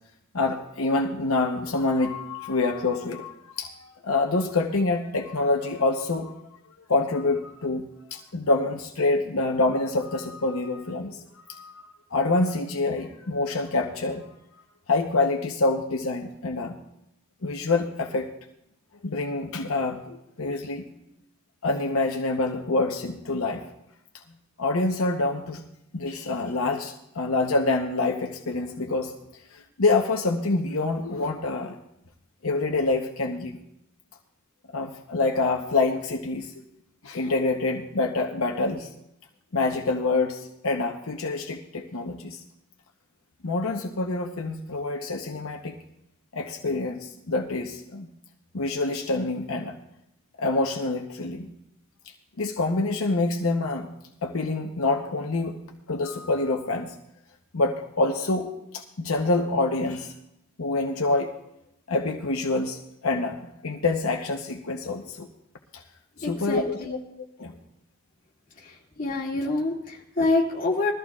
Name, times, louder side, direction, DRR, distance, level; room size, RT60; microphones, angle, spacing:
voice 1, 0.3-6.4 6.9-11.9 12.1-14.3 14.9-16.8 17.4-18.3 19.0-20.8 21.6-23.6 24.6-25.6 25.9-29.1 29.5-31.8 32.4-33.6 34.7-36.5 37.0-38.9 39.5-42.4 43.4-45.8 46.3-48.1 48.5-49.8 50.4-51.5 52.4-53.9 54.2-55.6 55.9-56.9 57.5-60.1 60.6-61.3 61.9-65.3 65.7-65.8 66.2-67.0 67.4-67.6, left 3 dB, 70° left, 2 dB, 0.9 m, -26 dB
voice 2, 66.2-67.0 69.0-70.9, left 2 dB, 40° left, -2 dB, 2.4 m, -26 dB
21.0 x 14.0 x 2.4 m, 0.80 s
head